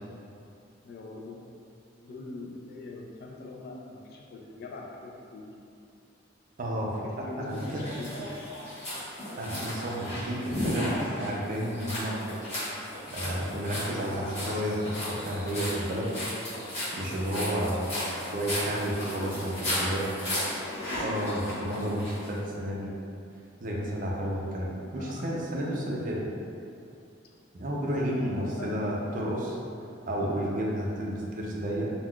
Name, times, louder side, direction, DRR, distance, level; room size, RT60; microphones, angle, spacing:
voice 1, 0.8-1.4 2.0-5.5 6.9-8.4 19.0-20.0 25.0-25.8 28.0-28.8 30.2-30.8, left 2 dB, 55° left, -1 dB, 0.3 m, -42 dB
voice 2, 6.6-6.9 7.2-7.8 9.4-10.9 11.2-12.2 13.1-16.1 16.9-20.0 21.0-22.9 23.6-26.2 27.5-29.6 30.1-31.9, equal, 45° right, -3 dB, 0.4 m, -31 dB
sound 1, 7.5-22.3, left 1 dB, 35° left, 1.1 m, -35 dB
3.5 x 2.3 x 2.3 m, 2.6 s
head